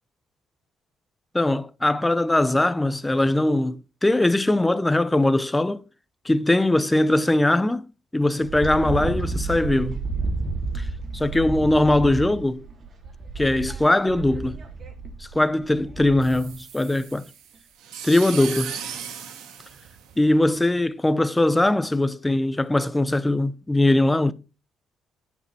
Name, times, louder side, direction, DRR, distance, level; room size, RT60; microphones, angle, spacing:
voice 1, 1.3-5.8 6.2-7.8 8.1-10.0 10.7-10.9 11.1-12.6 13.4-14.6 15.3-17.3 18.0-18.8 20.2-24.3, left 1 dB, 10° left, 0.8 m, -21 dB
Wind, 8.4-16.6, right 3 dB, 50° right, 3.5 m, -31 dB
sound 1, 16.2-20.6, right 8 dB, 90° right, 2.2 m, -37 dB
10.0 x 6.7 x 6.0 m
cardioid pair, 90°, 0 cm